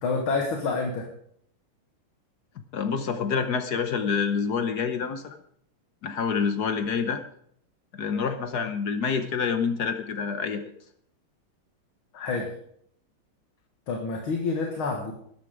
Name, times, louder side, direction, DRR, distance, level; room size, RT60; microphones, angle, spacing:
voice 1, 0.0-1.1 12.1-12.5 13.9-15.1, left 4 dB, 75° left, 2 dB, 2.4 m, -28 dB
voice 2, 2.7-5.4 6.0-7.2 7.9-10.6, left 6 dB, 55° left, 8 dB, 1.3 m, -27 dB
13.0 x 10.5 x 4.9 m, 0.67 s
omnidirectional pair, 2.3 m